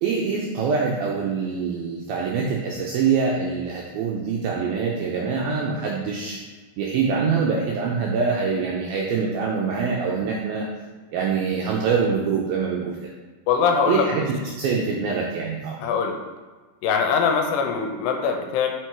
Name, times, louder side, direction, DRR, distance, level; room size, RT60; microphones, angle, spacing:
voice 1, 0.0-6.4 6.8-10.7 11.1-13.0 13.9-15.8, right 5 dB, 85° right, -2 dB, 2.1 m, -24 dB
voice 2, 13.5-14.1 15.8-16.2 16.8-18.7, left 6 dB, 85° left, 4 dB, 2.7 m, -22 dB
6.2 x 4.6 x 4.6 m, 1.3 s
omnidirectional pair, 5.0 m